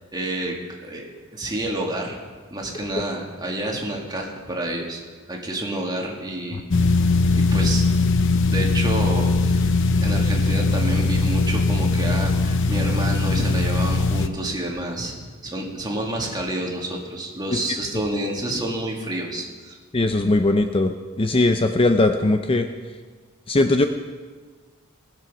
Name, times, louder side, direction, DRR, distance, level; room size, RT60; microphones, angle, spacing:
voice 1, 0.1-0.6 0.8-2.2 2.5-5.0 5.3-6.6 7.3-7.8 8.5-9.7 10.0-15.2 15.4-19.8, right 1 dB, 20° right, 0 dB, 2.0 m, -29 dB
sound 1, 6.7-14.3, left 3 dB, 60° left, 0.7 m, -20 dB
voice 2, 19.9-20.9 21.2-22.7 23.5-23.8, left 2 dB, 25° left, 6 dB, 0.6 m, -19 dB
19.5 x 7.7 x 6.2 m, 1.5 s
head